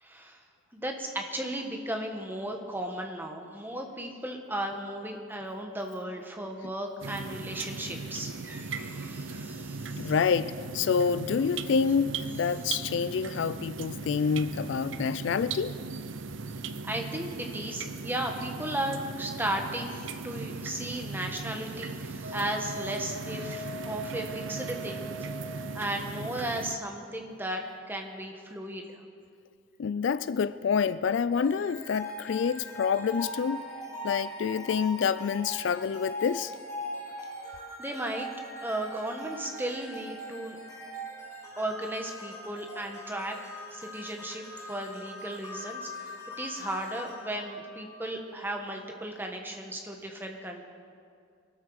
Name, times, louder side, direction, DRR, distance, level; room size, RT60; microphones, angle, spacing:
voice 1, 0.0-0.4 0.7-10.1 16.9-25.1 25.5-27.6 27.9-29.0 37.8-38.3 38.6-40.6 41.6-43.4 43.7-50.6, right 1 dB, 10° right, 1.3 m, -35 dB
sound 1, 7.0-26.7, right 4 dB, 70° right, 0.6 m, -38 dB
voice 2, 10.0-15.8 29.8-33.6 34.0-36.5, left 6 dB, 65° left, 0.3 m, -27 dB
Wind instrument woodwind instrument, 22.2-25.9, equal, 45° right, 0.9 m, -41 dB
sound 2, 31.3-48.5, left 1 dB, 15° left, 2.9 m, -41 dB
22.5 x 13.0 x 4.8 m
head